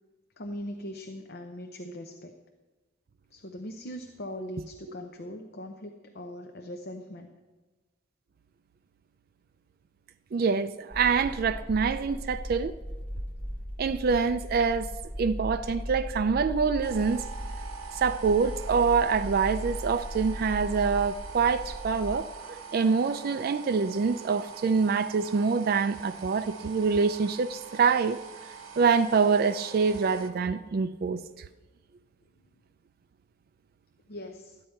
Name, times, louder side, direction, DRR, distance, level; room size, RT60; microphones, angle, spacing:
voice 1, 0.4-2.3 3.3-7.3 34.1-34.6, equal, 50° left, 0.7 m, -40 dB
voice 2, 10.3-12.7 13.8-14.9 15.2-17.3 17.9-28.2 28.8-31.5, right 5 dB, 45° right, 0.3 m, -25 dB
sound 1, 10.9-22.1, equal, 10° left, 1.4 m, -38 dB
sound 2, 16.8-30.3, right 6 dB, 80° right, 1.3 m, -44 dB
13.0 x 9.6 x 4.4 m
head